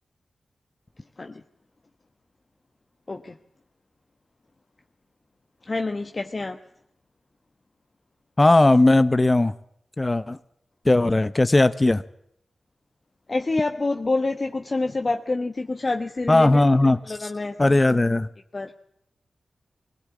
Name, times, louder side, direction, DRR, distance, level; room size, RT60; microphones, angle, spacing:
voice 1, 5.7-6.6 13.3-16.6 17.1-17.6 18.5-18.8, left 3 dB, 45° left, 5 dB, 1.2 m, -27 dB
voice 2, 8.4-9.5 10.0-10.4 10.8-12.0 16.3-17.3 17.6-18.3, left 2 dB, 30° left, 12 dB, 0.9 m, -18 dB
22.0 x 17.0 x 8.4 m, 0.76 s
cardioid pair, 45°, 0 cm